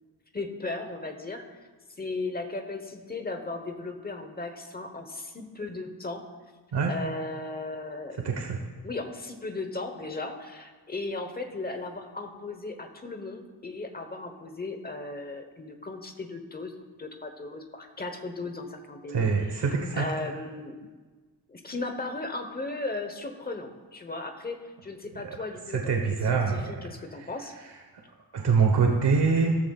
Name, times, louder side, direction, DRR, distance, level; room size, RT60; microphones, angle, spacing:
voice 1, 0.3-1.6 2.0-6.2 6.9-8.2 8.8-16.7 17.0-20.8 21.5-25.9 26.2-27.5, left 3 dB, 20° left, 6 dB, 1.0 m, -36 dB
voice 2, 8.2-8.6 19.1-20.0 25.7-26.7 28.3-29.6, right 5 dB, 70° right, 2 dB, 1.2 m, -24 dB
15.5 x 14.0 x 2.4 m, 1.3 s
wide cardioid pair, 180°, 42 cm